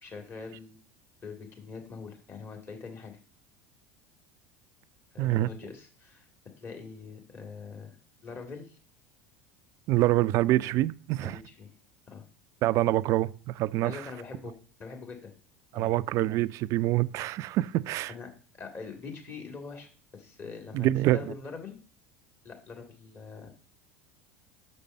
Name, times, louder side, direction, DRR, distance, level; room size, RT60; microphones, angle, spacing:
voice 1, 0.0-0.8 1.2-3.1 5.1-6.3 6.6-7.9 8.2-8.8 11.2-11.7 12.1-12.2 13.8-15.3 15.7-16.0 18.1-18.3 18.5-21.8 22.4-23.5, left 4 dB, 35° left, 2.3 m, -43 dB
voice 2, 5.2-5.5 9.9-11.4 12.6-14.0 15.7-18.1 20.7-21.2, right 16 dB, 50° right, 0.4 m, -26 dB
6.7 x 5.2 x 5.4 m
hypercardioid pair, 75°, 7 cm